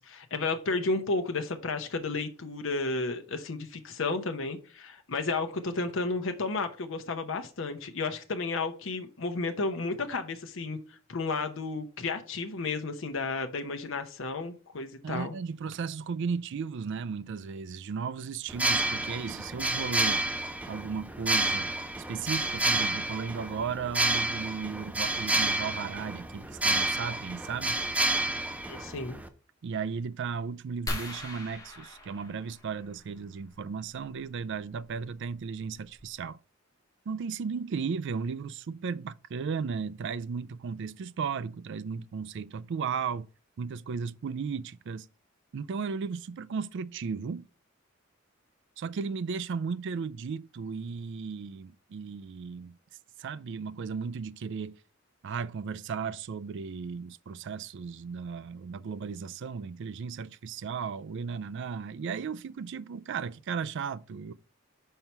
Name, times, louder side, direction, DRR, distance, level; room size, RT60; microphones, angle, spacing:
voice 1, 0.0-15.3 28.6-29.2, left 3 dB, 70° left, 0.8 m, -32 dB
voice 2, 15.0-21.7 22.1-27.8 29.6-36.4 37.1-43.3 43.6-45.1 45.5-47.5 48.8-52.8 53.2-54.8 55.2-64.3, right 5 dB, 60° right, 0.4 m, -35 dB
sound 1, 18.5-29.3, right 2 dB, 5° right, 0.6 m, -30 dB
sound 2, 30.9-33.2 34.8-35.0 35.6-35.7 36.0-36.2, left 1 dB, 20° left, 1.8 m, -39 dB
5.6 x 4.5 x 5.6 m
head